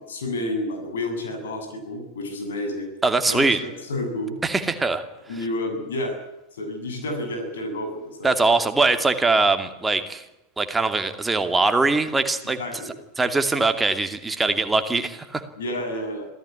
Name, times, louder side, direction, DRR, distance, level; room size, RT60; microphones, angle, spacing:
voice 1, 0.0-2.9 3.3-4.4 5.3-6.1 6.5-8.4 12.4-12.9 15.6-16.3, left 1 dB, 65° left, 5 dB, 7.6 m, -30 dB
voice 2, 3.0-3.6 4.4-5.0 8.2-10.2 10.6-12.6 13.2-15.4, right 3 dB, 10° right, 8 dB, 2.5 m, -22 dB
26.5 x 17.0 x 9.9 m, 0.90 s
figure-of-eight pair, 90°, 0 cm